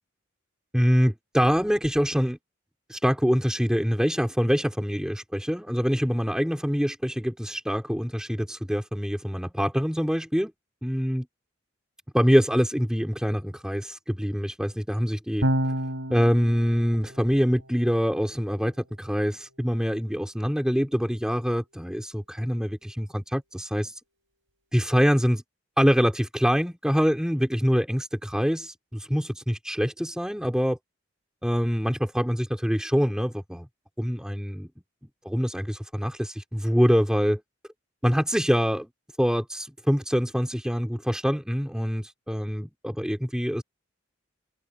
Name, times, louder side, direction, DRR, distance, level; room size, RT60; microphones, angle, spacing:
voice 1, 0.7-2.4 2.9-10.5 10.8-11.2 12.1-15.5 16.1-18.7 19.0-24.0 24.7-25.4 25.8-30.8 31.4-33.7 34.0-34.7 35.3-37.4 38.0-38.9 39.2-43.6, equal, 5° right, 3.8 m, -25 dB
Electric guitar / Bass guitar, 15.4-21.8, right 1 dB, 75° right, 4.8 m, -34 dB
head